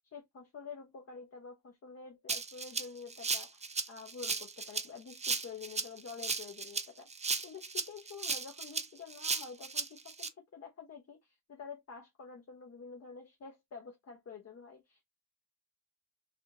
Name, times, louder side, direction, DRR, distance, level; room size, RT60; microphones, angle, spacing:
voice 1, 0.1-3.6 3.9-7.1 7.4-15.0, left 5 dB, 45° left, 0.9 m, -48 dB
Rattle (instrument), 2.3-10.3, right 4 dB, 20° right, 0.5 m, -36 dB
3.4 x 2.4 x 2.7 m
supercardioid pair, 60°, 35 cm